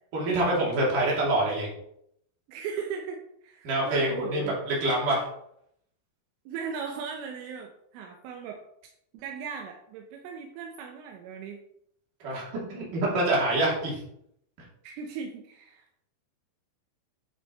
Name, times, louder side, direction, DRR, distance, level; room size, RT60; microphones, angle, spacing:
voice 1, 0.1-1.7 3.6-5.2 12.2-14.0, right 1 dB, 45° right, -5 dB, 4.3 m, -26 dB
voice 2, 2.5-4.6 6.5-8.6 9.1-11.6 14.8-16.1, right 6 dB, 80° right, 2 dB, 3.4 m, -38 dB
11.5 x 7.3 x 3.2 m, 0.73 s
omnidirectional pair, 5.8 m